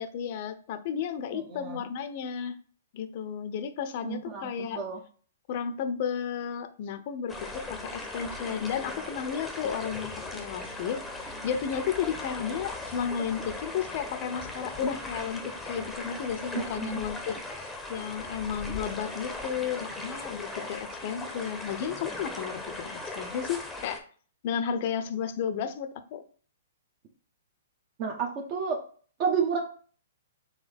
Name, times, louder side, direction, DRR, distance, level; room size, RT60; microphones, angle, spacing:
voice 1, 0.0-2.6 2.9-4.8 5.5-24.0 24.4-26.2, left 7 dB, 50° left, 10 dB, 0.6 m, -33 dB
voice 2, 1.3-1.8 4.0-5.0 16.8-17.0 28.0-28.8 29.2-29.6, right 6 dB, 40° right, 1 dB, 0.8 m, -30 dB
sound 1, 7.3-24.0, left 2 dB, 5° left, 0.8 m, -38 dB
4.0 x 3.4 x 3.4 m, 0.44 s
hypercardioid pair, 130°, 0 cm